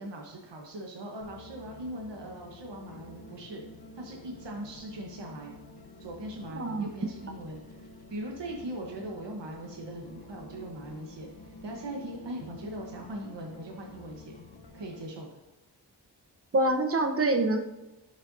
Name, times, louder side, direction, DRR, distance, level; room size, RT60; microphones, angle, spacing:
voice 1, 0.0-3.6 3.9-5.5 6.0-14.4 14.7-15.3, right 1 dB, 80° right, 0 dB, 1.2 m, -40 dB
sound 1, 1.2-15.0, left 2 dB, 65° left, 1.1 m, -49 dB
voice 2, 6.6-6.9 16.5-17.6, right 2 dB, 30° right, 6 dB, 0.9 m, -25 dB
11.0 x 5.4 x 2.7 m, 1.0 s
cardioid pair, 50°, 42 cm